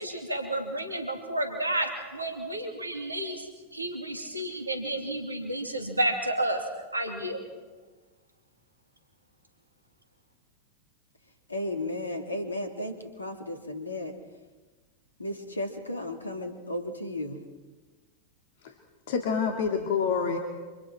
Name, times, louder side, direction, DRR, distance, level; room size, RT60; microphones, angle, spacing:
voice 1, 0.0-6.6 6.9-7.4, right 1 dB, 85° right, 4 dB, 2.7 m, -31 dB
voice 2, 11.5-14.2 15.2-17.4, left 1 dB, 80° left, 6 dB, 2.4 m, -34 dB
voice 3, 19.1-20.4, left 6 dB, 55° left, 3 dB, 2.2 m, -27 dB
28.0 x 25.5 x 4.5 m, 1.3 s
figure-of-eight pair, 90°, 0 cm